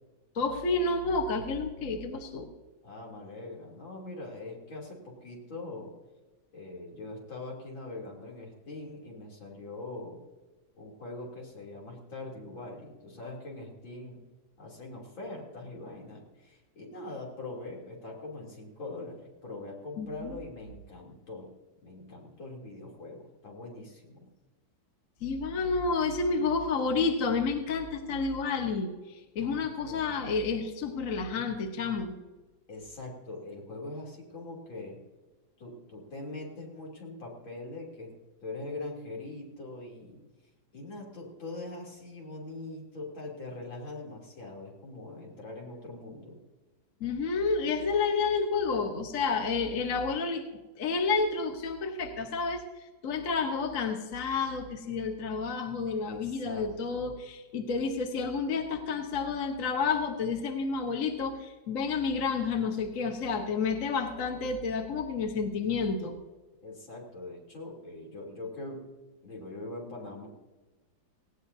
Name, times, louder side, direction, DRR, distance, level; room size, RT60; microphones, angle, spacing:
voice 1, 0.3-2.5 20.0-20.3 25.2-32.2 47.0-50.4 50.8-52.6 53.0-66.2, left 4 dB, 45° left, 4 dB, 1.4 m, -30 dB
voice 2, 2.8-5.9 6.5-10.2 10.8-14.2 14.6-21.5 21.8-24.3 29.4-30.2 32.7-35.0 35.6-38.1 38.4-40.2 40.7-46.4 56.1-57.1 66.6-68.8 69.2-70.3, left 2 dB, 80° left, -2 dB, 3.9 m, -42 dB
18.5 x 17.0 x 2.7 m, 1.2 s
omnidirectional pair, 2.1 m